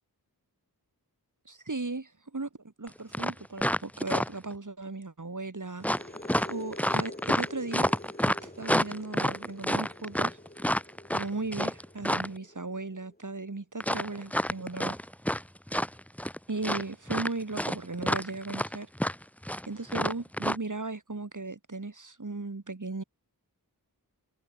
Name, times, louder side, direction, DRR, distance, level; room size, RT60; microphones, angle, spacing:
voice 1, 1.5-2.5 2.8-5.9 6.5-7.9 8.3-10.4 11.1-15.0 16.5-18.9 19.6-23.0, right 3 dB, 50° right, 4.4 m, -36 dB
sound 1, 2.9-3.0 3.1-4.5 5.8-12.4 13.8-15.4 15.7-16.4 16.6-20.6, equal, 5° left, 2.2 m, -28 dB
sound 2, 5.8-13.3, left 1 dB, 25° left, 7.7 m, -47 dB
wide cardioid pair, 70°, 38 cm